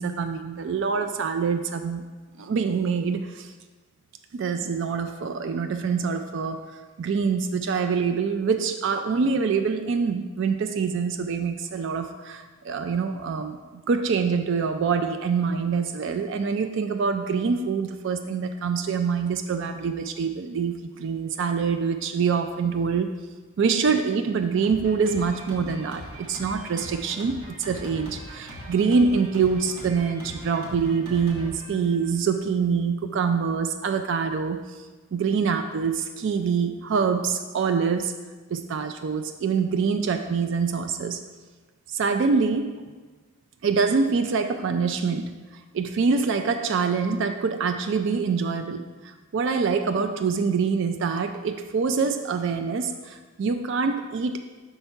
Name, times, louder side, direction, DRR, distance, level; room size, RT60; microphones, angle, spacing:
voice 1, 0.0-2.0 2.4-3.5 4.3-6.6 7.0-23.1 23.6-34.7 35.1-38.1 38.5-41.2 41.9-42.8 43.6-45.3 45.7-54.4, right 5 dB, 60° right, 7 dB, 0.3 m, -25 dB
Drum kit, 24.6-32.4, equal, 90° right, 1.6 m, -41 dB
5.4 x 4.5 x 5.8 m, 1.3 s
head